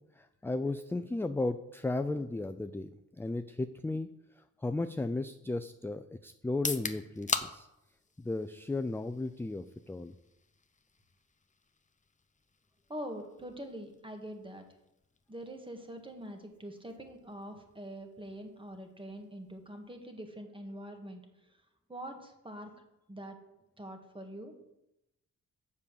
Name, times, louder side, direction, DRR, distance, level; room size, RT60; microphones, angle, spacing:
voice 1, 0.2-2.9 3.2-4.1 4.6-7.7 8.2-10.1, left 2 dB, 5° left, 10 dB, 0.4 m, -35 dB
sound 1, 6.5-20.3, left 4 dB, 25° left, 0.8 m, -44 dB
voice 2, 12.9-14.6 15.3-21.2 21.9-22.7 23.1-23.4 23.8-24.5, right 1 dB, 15° right, 5 dB, 1.7 m, -44 dB
7.4 x 5.4 x 6.8 m, 0.88 s
cardioid pair, 75°, 32 cm